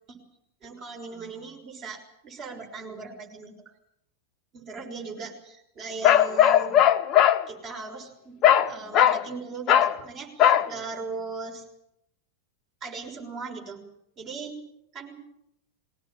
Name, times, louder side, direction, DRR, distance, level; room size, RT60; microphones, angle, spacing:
voice 1, 0.6-3.5 4.5-6.8 7.5-8.4 8.7-11.6 12.8-13.8 14.2-14.6 14.9-15.1, right 4 dB, 35° right, 1 dB, 6.1 m, -38 dB
Bark, 6.0-7.4 8.4-8.7 8.9-9.2 9.7-10.0 10.4-10.7, left 10 dB, 35° left, 1.0 m, -18 dB
21.5 x 18.0 x 9.0 m, 0.80 s
figure-of-eight pair, 90°, 0 cm